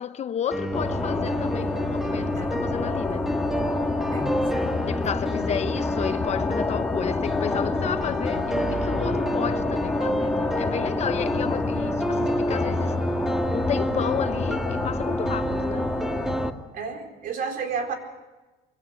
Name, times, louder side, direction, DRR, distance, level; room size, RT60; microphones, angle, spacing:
voice 1, 0.0-3.3 4.9-13.0 13.5-15.9, left 9 dB, 40° left, 0.8 m, -32 dB
sound 1, 0.5-16.5, equal, ahead, 1.4 m, -29 dB
sound 2, 0.7-16.5, left 3 dB, 15° left, 2.0 m, -28 dB
voice 2, 4.1-4.8 5.4-5.5 16.7-17.9, right 5 dB, 55° right, 4.4 m, -32 dB
23.0 x 17.0 x 9.7 m
cardioid pair, 115°, 17 cm